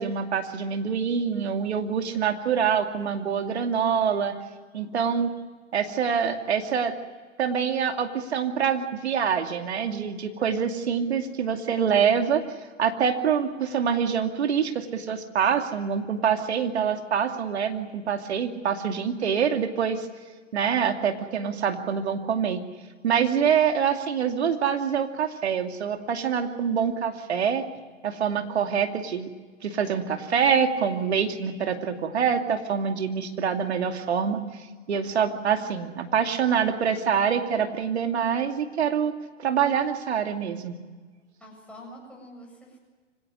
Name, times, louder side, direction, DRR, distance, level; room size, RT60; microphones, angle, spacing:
voice 1, 0.0-4.3 4.7-5.3 5.7-6.9 7.4-12.4 12.8-20.1 20.5-22.6 23.0-27.6 28.0-29.3 29.6-34.4 34.9-39.1 39.4-40.7, right 7 dB, 60° right, 5 dB, 2.6 m, -25 dB
voice 2, 41.4-42.8, equal, 5° left, -2 dB, 7.8 m, -46 dB
25.5 x 17.5 x 9.9 m, 1.4 s
figure-of-eight pair, 125°, 37 cm